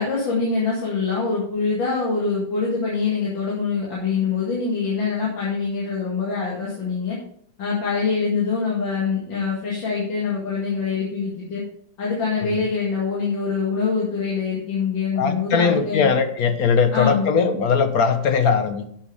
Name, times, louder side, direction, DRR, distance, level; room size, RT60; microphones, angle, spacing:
voice 1, 0.0-7.2 7.6-11.6 12.0-16.1 16.9-17.3, left 5 dB, 85° left, -5 dB, 2.9 m, -24 dB
voice 2, 15.2-18.9, left 5 dB, 55° left, 9 dB, 1.3 m, -20 dB
10.5 x 7.3 x 4.8 m, 0.67 s
omnidirectional pair, 2.0 m